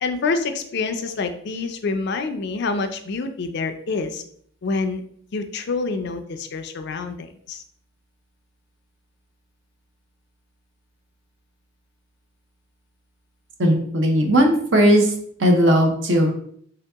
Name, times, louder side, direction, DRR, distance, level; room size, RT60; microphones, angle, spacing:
voice 1, 0.0-4.2 4.6-5.0 5.3-7.6, left 4 dB, 55° left, 7 dB, 0.4 m, -27 dB
voice 2, 13.6-15.1 15.4-16.3, equal, 60° right, 4 dB, 0.7 m, -17 dB
3.5 x 2.8 x 3.4 m, 0.62 s
head